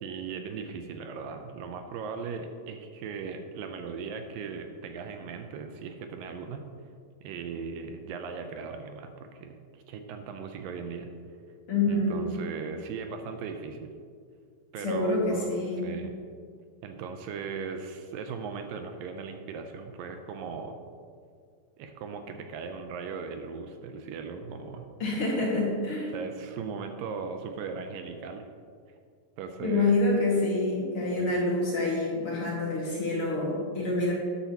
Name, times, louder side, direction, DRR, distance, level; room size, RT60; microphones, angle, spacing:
voice 1, 0.0-6.6 7.2-11.1 11.9-13.9 14.7-15.6 15.8-16.1 16.8-20.8 21.8-24.9 26.1-28.4 29.4-30.0 31.2-31.6, right 5 dB, 80° right, 6 dB, 2.3 m, -38 dB
voice 2, 11.7-12.3 14.8-15.9 25.0-26.1 29.6-34.1, left 2 dB, 45° left, -5 dB, 2.5 m, -27 dB
12.5 x 10.0 x 2.9 m, 2.1 s
omnidirectional pair, 4.1 m